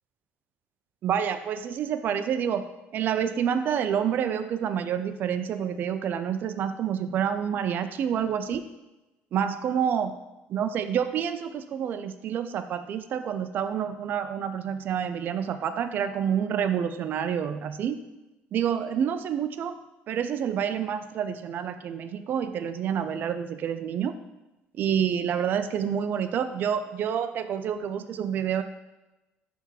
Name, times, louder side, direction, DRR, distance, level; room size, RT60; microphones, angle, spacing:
voice 1, 1.0-2.6 2.9-8.6 9.3-10.1 10.5-18.0 18.5-19.8 20.1-24.2 24.8-28.6, right 8 dB, 45° right, 9 dB, 0.4 m, -28 dB
6.1 x 3.5 x 5.7 m, 1.0 s
cardioid pair, 150°, 4 cm